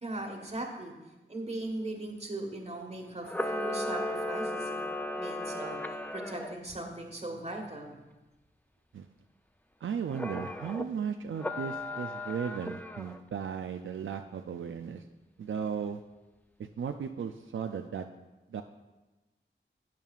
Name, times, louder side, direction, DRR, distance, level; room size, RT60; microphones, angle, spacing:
voice 1, 0.0-0.9 1.3-4.8 5.1-8.0, right 2 dB, 30° right, 2 dB, 1.5 m, -39 dB
Camera, 3.2-6.5 10.1-10.9 11.4-13.2, left 1 dB, 10° left, 0.5 m, -35 dB
voice 2, 9.8-15.0 15.4-16.0 16.6-18.1 18.5-18.6, right 7 dB, 75° right, 6 dB, 0.4 m, -36 dB
12.5 x 9.0 x 2.4 m, 1.1 s
wide cardioid pair, 75°, 20 cm